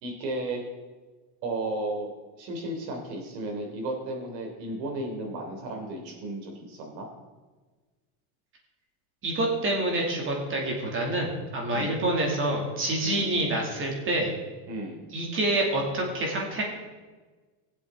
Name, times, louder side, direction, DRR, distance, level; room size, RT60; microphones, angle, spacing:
voice 1, 0.0-0.6 1.4-2.1 2.3-7.1 11.7-12.0 13.1-13.3 14.7-15.0, right 2 dB, 75° right, 2 dB, 3.3 m, -34 dB
voice 2, 9.2-14.3 15.1-16.6, right 1 dB, 25° right, -1 dB, 2.4 m, -27 dB
20.5 x 7.8 x 3.7 m, 1.3 s
cardioid pair, 165°, 50 cm